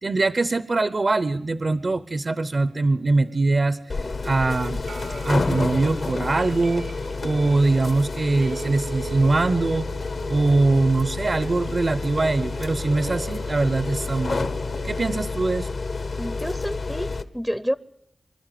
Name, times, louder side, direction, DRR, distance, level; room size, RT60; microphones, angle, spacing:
voice 1, 0.0-4.8 5.2-6.9 7.2-9.9 10.3-14.5 14.8-15.7, right 3 dB, 50° right, 15 dB, 0.8 m, -22 dB
sound 1, 2.7-15.2, right 5 dB, 80° right, 1.3 m, -41 dB
sound 2, 3.9-17.2, left 3 dB, 65° left, 1.3 m, -29 dB
voice 2, 16.2-17.8, equal, ahead, 17 dB, 0.7 m, -29 dB
26.0 x 12.0 x 9.2 m, 0.86 s
cardioid pair, 50°, 0 cm